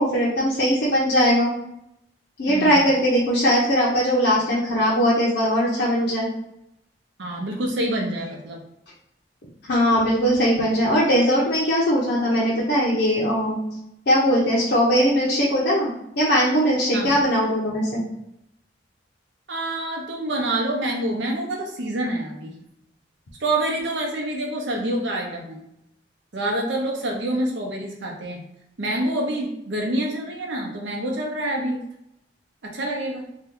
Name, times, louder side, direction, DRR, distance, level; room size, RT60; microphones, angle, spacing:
voice 1, 0.0-1.5 2.4-6.3 9.7-13.6 14.1-15.9 16.2-18.0, equal, 65° left, -6 dB, 0.6 m, -20 dB
voice 2, 2.5-2.9 7.2-8.6 16.9-17.2 19.5-22.5 23.4-25.6 26.3-28.4 28.8-31.8 32.6-33.2, right 1 dB, 85° right, 0 dB, 0.7 m, -27 dB
2.7 x 2.2 x 3.6 m, 0.81 s
head